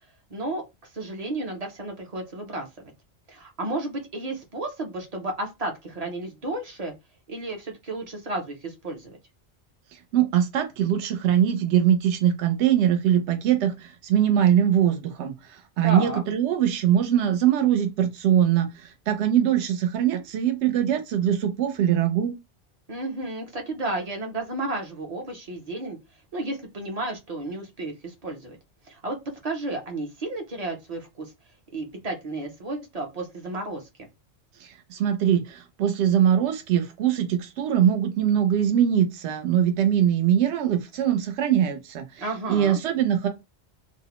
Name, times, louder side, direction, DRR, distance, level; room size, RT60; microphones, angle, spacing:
voice 1, 0.3-2.7 3.3-6.9 7.3-9.2 15.8-16.2 22.9-26.0 26.3-28.6 28.8-29.2 29.4-31.3 31.7-34.1 42.2-42.8, right 2 dB, 45° right, 0.6 m, -32 dB
voice 2, 10.1-22.3 34.6-42.2 42.5-43.3, right 10 dB, 80° right, 0.9 m, -22 dB
2.4 x 2.0 x 2.9 m
omnidirectional pair, 1.2 m